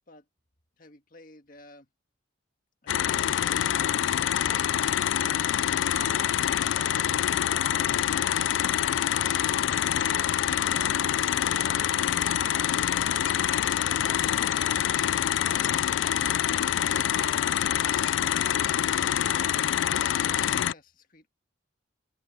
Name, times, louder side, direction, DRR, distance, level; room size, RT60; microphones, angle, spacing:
voice 1, 0.8-1.9 2.8-4.8 20.2-21.3, left 2 dB, 45° left, 1.8 m, -53 dB
sound 1, 2.9-20.7, left 10 dB, 70° left, 0.3 m, -26 dB
voice 2, 6.1-8.4 8.8-13.3 13.6-14.9 15.3-16.1 16.4-18.9, right 2 dB, 80° right, 6.1 m, -51 dB
head